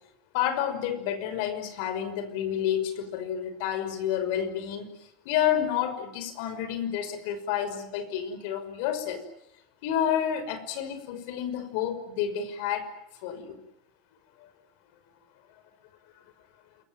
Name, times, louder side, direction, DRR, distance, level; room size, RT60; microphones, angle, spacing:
voice 1, 0.3-4.9 5.3-9.2 9.8-12.9 13.2-13.6 14.4-14.5, left 9 dB, 70° left, 10 dB, 5.6 m, -29 dB
29.0 x 22.0 x 9.1 m, 0.80 s
supercardioid pair, 140°, 0 cm